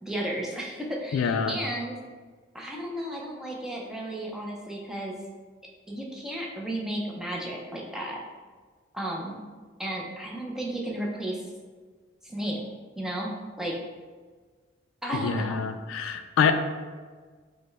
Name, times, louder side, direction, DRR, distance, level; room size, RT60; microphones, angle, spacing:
voice 1, 0.0-2.0 2.5-5.2 5.9-8.2 8.9-9.4 9.8-11.4 12.2-12.6 13.0-13.3 13.6-13.8 15.0-15.6, right 1 dB, ahead, -3 dB, 0.5 m, -33 dB
voice 2, 1.1-1.5 15.1-16.5, left 6 dB, 85° left, 8 dB, 0.3 m, -25 dB
5.1 x 2.1 x 3.3 m, 1.5 s
head